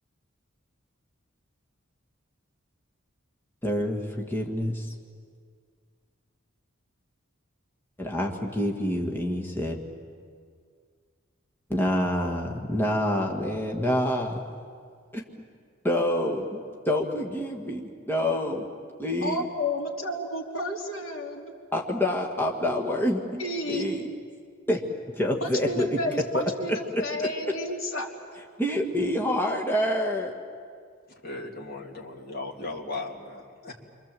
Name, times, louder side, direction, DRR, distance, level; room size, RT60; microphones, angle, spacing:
voice 1, 3.6-4.9 8.0-9.8 11.7-14.4 15.8-18.6 19.0-19.4 21.7-23.4 23.7-24.0 24.7-24.8 25.2-25.9 26.3-27.3 28.6-30.3, left 1 dB, 10° left, -1 dB, 1.8 m, -27 dB
voice 2, 19.2-21.5 23.4-23.8 25.4-28.1, left 1 dB, 80° left, 0 dB, 3.2 m, -31 dB
voice 3, 31.2-33.7, left 2 dB, 50° left, 0 dB, 3.0 m, -37 dB
29.0 x 24.5 x 7.7 m, 2.1 s
head